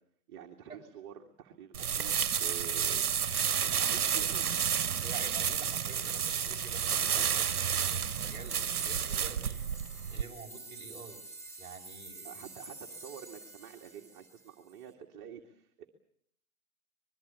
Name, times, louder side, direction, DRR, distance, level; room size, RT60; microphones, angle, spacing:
voice 1, 0.3-3.1 3.6-4.5 12.2-15.9, right 9 dB, 30° right, 0 dB, 2.2 m, -48 dB
sound 1, 1.7-10.2, right 8 dB, 90° right, 1.0 m, -31 dB
sound 2, 2.8-14.8, right 2 dB, 5° left, 3.5 m, -48 dB
voice 2, 5.0-9.6 10.1-11.2 11.6-12.5, right 5 dB, 10° right, -3 dB, 5.9 m, -48 dB
24.5 x 22.5 x 8.4 m, 0.69 s
hypercardioid pair, 145°, 44 cm